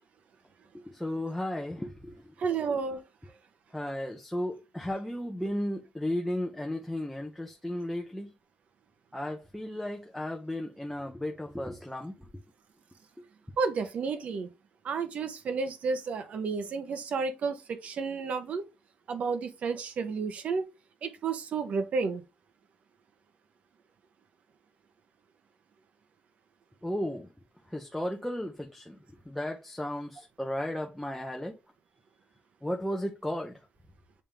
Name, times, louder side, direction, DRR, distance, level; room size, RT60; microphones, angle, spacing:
voice 1, 0.7-2.2 3.7-8.3 9.1-12.1 13.2-13.3 26.8-27.3 27.7-29.0 29.3-31.6 32.6-33.5, left 1 dB, 5° left, 0.9 m, -34 dB
voice 2, 2.4-3.0 13.6-14.5 14.8-18.6 19.1-20.7 21.0-22.2, right 5 dB, 50° right, 1.0 m, -31 dB
8.8 x 3.6 x 3.5 m
cardioid pair, 145°, 3 cm